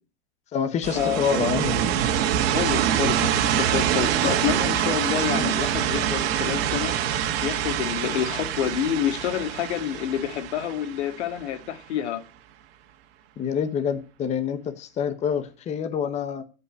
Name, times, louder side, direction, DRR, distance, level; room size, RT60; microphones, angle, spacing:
voice 1, 0.5-1.9 2.3-2.5 4.2-4.3 13.4-16.4, left 7 dB, 20° left, 0.9 m, -27 dB
sound 1, 0.8-11.5, right 10 dB, 60° right, 1.8 m, -25 dB
voice 2, 2.4-7.0 7.4-12.2, left 10 dB, 90° left, 1.8 m, -28 dB
16.0 x 5.5 x 6.3 m
supercardioid pair, 155°, 33 cm